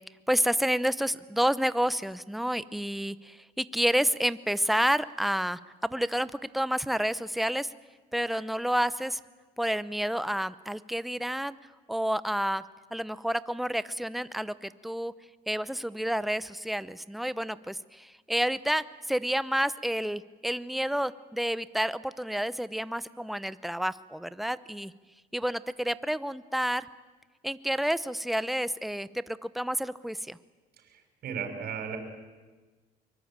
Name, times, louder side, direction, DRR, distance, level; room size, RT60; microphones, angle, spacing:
voice 1, 0.3-7.7 8.1-9.2 9.6-11.6 11.9-12.6 12.9-15.1 15.5-24.9 25.3-26.9 27.4-30.4, equal, ahead, 15 dB, 0.8 m, -29 dB
voice 2, 30.8-32.0, right 7 dB, 65° right, 4 dB, 6.3 m, -36 dB
23.5 x 23.0 x 8.9 m, 1.3 s
cardioid pair, 110°, 17 cm